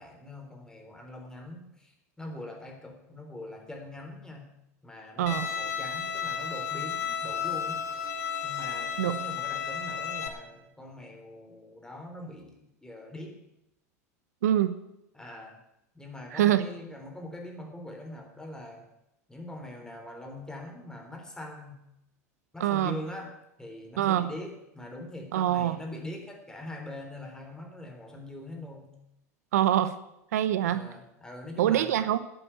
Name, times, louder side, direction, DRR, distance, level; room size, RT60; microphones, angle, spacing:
voice 1, 0.0-4.5 4.8-7.9 8.4-13.4 15.1-15.6 15.9-18.9 19.3-21.8 22.5-29.0 30.7-32.0, left 1 dB, 5° left, 3 dB, 3.7 m, -42 dB
Bowed string instrument, 5.3-10.3, left 7 dB, 75° left, 1.9 m, -33 dB
voice 2, 14.4-14.8 16.3-16.7 22.6-22.9 24.0-24.3 25.3-25.8 29.5-30.0 30.3-30.9 31.6-32.2, right 12 dB, 75° right, 13 dB, 0.8 m, -24 dB
11.0 x 8.0 x 9.3 m, 0.85 s
hypercardioid pair, 90°, 9 cm